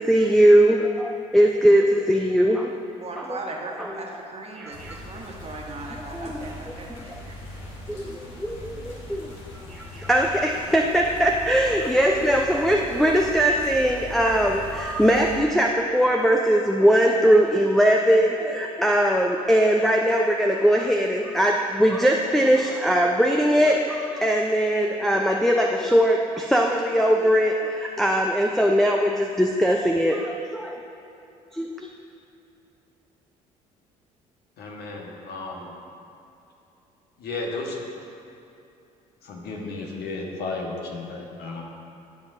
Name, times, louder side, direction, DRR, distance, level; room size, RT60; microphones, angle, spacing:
voice 1, 0.0-2.7 3.2-3.4 4.6-5.0 6.1-6.5 7.9-9.4 9.7-30.8 31.5-31.9, equal, ahead, 0 dB, 0.6 m, -20 dB
voice 2, 3.0-7.4, right 2 dB, 35° right, -1 dB, 1.5 m, -37 dB
sound 1, 4.7-15.4, equal, 80° left, 1.6 m, -40 dB
voice 3, 34.6-35.7 37.2-37.8 39.2-41.6, left 3 dB, 60° left, -1 dB, 1.3 m, -33 dB
16.0 x 5.3 x 2.6 m, 2.8 s
hypercardioid pair, 55°, 18 cm